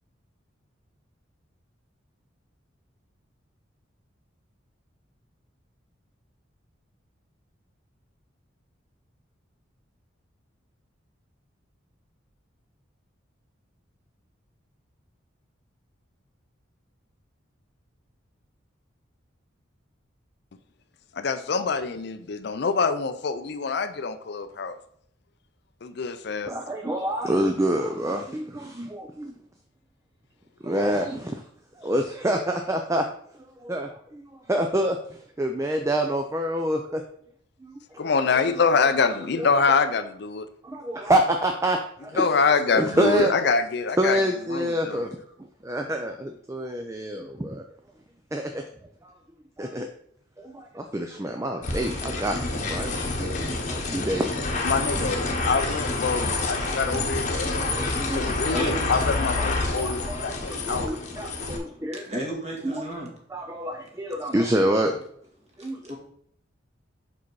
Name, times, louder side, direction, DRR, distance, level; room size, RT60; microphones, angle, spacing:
voice 1, 21.1-24.8 25.8-26.5 38.0-40.5 42.2-44.2 44.5-45.0 54.6-60.9, left 4 dB, 55° left, 0.4 m, -25 dB
voice 2, 26.5-29.4 30.6-31.4 31.7-33.1 33.3-37.0 37.6-38.1 38.3-38.4 39.4-39.5 40.6-43.3 44.0-47.6 48.3-48.7 49.0-49.1 49.6-49.9 50.4-55.0 55.3-55.4 56.6-56.7 57.4-58.7 59.3-62.1 62.6-62.8 63.3-65.0 65.6-65.9, right 1 dB, 15° right, 0.4 m, -28 dB
sound 1, 51.6-61.6, left 2 dB, 40° left, 1.0 m, -28 dB
voice 3, 57.7-58.0 58.5-58.9 59.7-60.0 60.4-63.1 65.6-66.0, right 1 dB, 35° right, 1.8 m, -36 dB
5.6 x 4.8 x 4.6 m
head